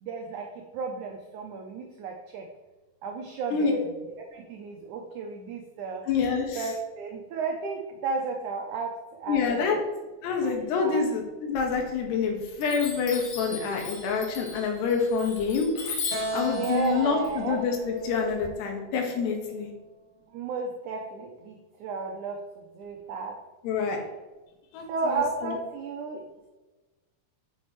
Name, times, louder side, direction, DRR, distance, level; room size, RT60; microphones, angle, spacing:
voice 1, 0.0-2.5 3.0-6.0 6.6-9.7 10.4-11.1 16.4-17.6 20.3-22.4 22.7-23.4 23.8-24.0 24.9-26.2, right 4 dB, 80° right, 2 dB, 1.7 m, -33 dB
voice 2, 3.5-3.8 6.1-6.6 9.3-9.8 10.2-19.7 23.6-24.0 24.7-25.5, left 5 dB, 90° left, 2 dB, 3.6 m, -27 dB
Chime, 11.6-12.2 12.6-18.5, left 4 dB, 60° left, 3.2 m, -38 dB
Keyboard (musical), 16.1-19.6, right 1 dB, 40° left, 1.0 m, -37 dB
9.6 x 7.8 x 3.2 m, 1.2 s
omnidirectional pair, 4.7 m